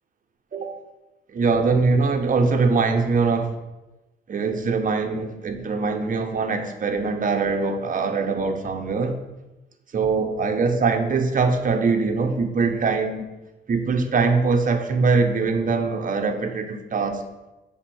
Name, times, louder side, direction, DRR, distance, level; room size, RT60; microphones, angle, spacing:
voice 1, 0.5-0.8 1.3-3.5 4.3-9.2 9.9-13.3 13.7-17.2, right 4 dB, 40° right, 5 dB, 1.1 m, -22 dB
7.3 x 3.7 x 6.3 m, 1.0 s
cardioid pair, 90°, 20 cm